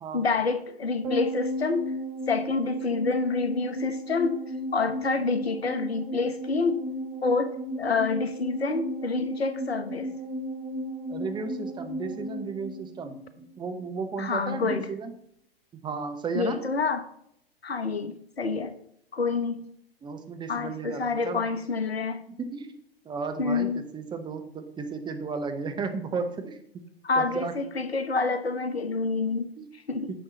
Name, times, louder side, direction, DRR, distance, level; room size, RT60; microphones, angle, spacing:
voice 1, 0.1-1.9 2.3-4.4 4.7-6.8 7.2-7.5 7.8-10.1 14.2-14.8 16.3-17.0 17.6-18.7 19.1-19.6 20.5-22.2 23.4-23.8 27.0-29.5 29.9-30.1, left 4 dB, 80° left, 11 dB, 1.1 m, -27 dB
sound 1, 1.0-13.6 13.8-13.9, equal, 50° right, 3.3 m, -34 dB
voice 2, 11.1-15.1 15.8-16.6 20.0-21.4 22.4-22.8 23.0-26.6 27.2-27.5 29.6-29.7, right 4 dB, 15° right, 7 dB, 0.9 m, -34 dB
10.0 x 6.5 x 4.1 m, 0.71 s
figure-of-eight pair, 110°, 30 cm